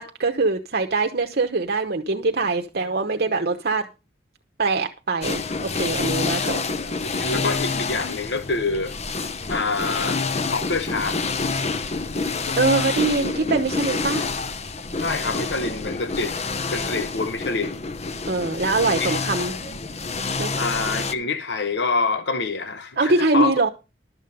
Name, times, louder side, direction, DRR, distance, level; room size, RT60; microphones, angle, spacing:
voice 1, 0.0-3.8 4.6-6.6 12.6-14.3 18.3-19.5 20.4-20.5 23.0-23.7, right 3 dB, 60° right, 1.0 m, -23 dB
sound 1, 5.2-21.1, left 4 dB, 40° left, 0.9 m, -27 dB
voice 2, 7.2-8.9 9.5-10.2 10.5-11.3 12.8-13.0 15.0-16.4 16.7-17.8 18.8-19.1 20.6-23.5, left 3 dB, 70° left, 0.9 m, -26 dB
12.5 x 7.3 x 5.3 m
head